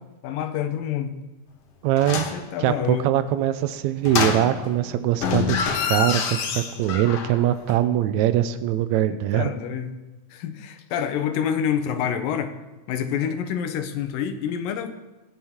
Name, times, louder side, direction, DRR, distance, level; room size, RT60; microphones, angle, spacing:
voice 1, 0.2-1.1 2.3-3.1 9.1-10.0 10.3-12.6 12.9-14.9, left 8 dB, 85° left, 8 dB, 2.7 m, -27 dB
voice 2, 1.8-2.3 2.6-5.6 5.9-9.5, right 12 dB, 85° right, 11 dB, 1.7 m, -22 dB
sound 1, 2.0-2.4 4.0-4.8 5.2-7.4 7.7-7.8, left 6 dB, 60° left, 1.8 m, -26 dB
20.5 x 9.9 x 3.7 m, 1.1 s
omnidirectional pair, 3.9 m